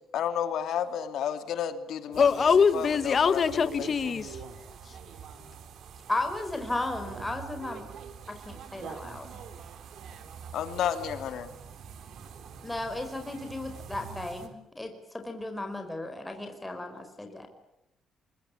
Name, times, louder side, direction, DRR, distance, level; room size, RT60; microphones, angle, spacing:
voice 1, 0.0-2.2 2.7-3.9 10.5-11.5 14.5-14.6, left 9 dB, 75° left, 2.7 m, -32 dB
voice 2, 2.1-4.5, left 6 dB, 45° left, 1.6 m, -23 dB
sound 1, 2.1-14.5, right 7 dB, 70° right, 3.6 m, -45 dB
voice 3, 6.1-7.9 8.3-9.4 12.6-17.5, left 2 dB, 10° left, 4.9 m, -35 dB
25.0 x 22.5 x 8.6 m
cardioid pair, 90°, 0 cm